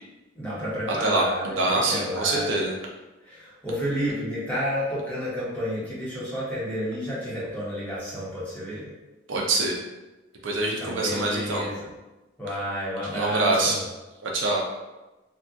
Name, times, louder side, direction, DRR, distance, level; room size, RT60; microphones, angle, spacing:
voice 1, 0.3-2.6 3.2-8.9 10.8-11.9 12.4-13.8, equal, 5° left, -9 dB, 0.9 m, -30 dB
voice 2, 0.9-2.7 9.3-9.7 10.4-11.7 13.1-13.8 14.2-14.6, right 2 dB, 75° right, -1 dB, 0.5 m, -25 dB
2.7 x 2.3 x 3.5 m, 1.1 s
head